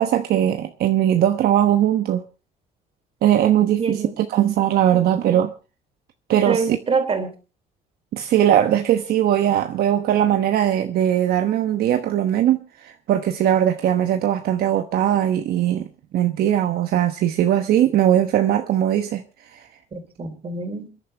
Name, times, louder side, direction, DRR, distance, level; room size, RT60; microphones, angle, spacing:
voice 1, 0.0-2.2 3.2-5.5 6.3-6.8 8.1-15.9 16.1-19.2 19.5-19.7, right 11 dB, 65° right, 1.0 m, -20 dB
voice 2, 3.8-4.3 4.9-5.2 6.5-7.3 19.9-20.9, right 5 dB, 35° right, 3.5 m, -26 dB
28.5 x 10.5 x 3.3 m
cardioid pair, 110°, 17 cm